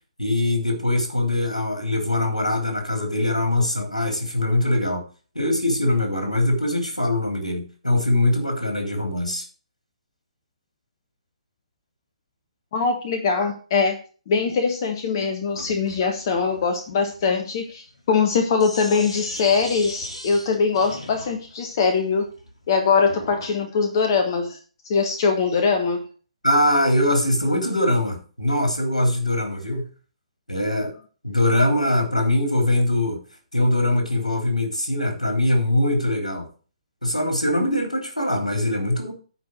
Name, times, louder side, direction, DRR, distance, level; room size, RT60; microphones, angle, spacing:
voice 1, 0.2-5.0 5.4-9.5 26.4-29.9 30.5-30.9 31.2-33.2 33.5-36.5 37.0-39.1, left 1 dB, 85° left, 3 dB, 3.5 m, -22 dB
voice 2, 12.7-14.0 14.3-22.3 22.7-24.6 24.8-26.0, left 5 dB, 40° left, 6 dB, 1.4 m, -22 dB
Sink (filling or washing), 15.5-23.5, left 1 dB, 65° left, 3.6 m, -40 dB
9.7 x 4.9 x 6.5 m, 0.39 s
figure-of-eight pair, 130°, 4 cm